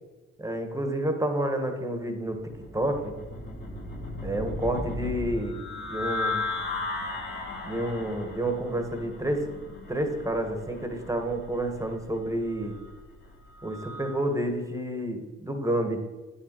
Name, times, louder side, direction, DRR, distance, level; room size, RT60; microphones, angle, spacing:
voice 1, 0.4-3.1 4.2-5.6 5.9-6.4 7.6-9.4 9.9-12.8 13.6-16.0, right 1 dB, 10° right, 5 dB, 1.3 m, -29 dB
sound 1, 2.3-14.2, left 2 dB, 35° left, 1.6 m, -36 dB
9.2 x 6.4 x 4.6 m, 1.2 s
cardioid pair, 90°, 30 cm